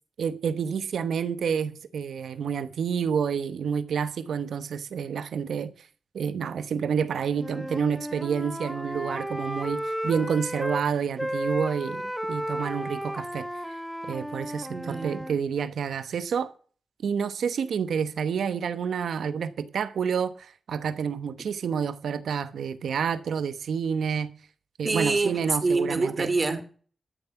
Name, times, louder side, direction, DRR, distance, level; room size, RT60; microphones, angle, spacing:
voice 1, 0.2-5.7 6.1-13.5 14.1-16.5 17.0-24.3 24.8-26.3, right 7 dB, 90° right, 1.1 m, -29 dB
Wind instrument woodwind instrument, 7.3-10.8 11.2-15.4, equal, 5° right, 1.2 m, -33 dB
voice 2, 14.7-15.2 24.8-26.6, right 3 dB, 45° right, 2.6 m, -26 dB
13.5 x 7.4 x 5.9 m
cardioid pair, 60°, 0 cm